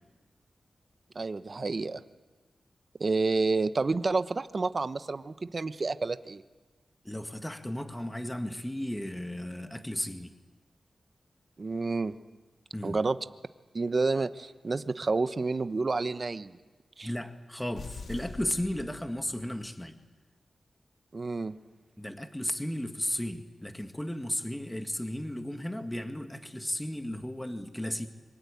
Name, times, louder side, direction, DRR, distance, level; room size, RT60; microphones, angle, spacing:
voice 1, 1.1-2.0 3.0-6.4 11.6-12.1 12.8-13.2 13.7-16.6 17.0-17.1 21.1-21.5, right 3 dB, 50° right, 12 dB, 1.0 m, -29 dB
voice 2, 7.0-10.3 12.7-13.0 17.0-20.0 22.0-28.1, left 1 dB, 10° left, 7 dB, 1.8 m, -34 dB
sound 1, 17.7-19.6, left 4 dB, 85° left, 2.4 m, -44 dB
26.5 x 24.0 x 8.5 m, 1.3 s
cardioid pair, 60°, 0 cm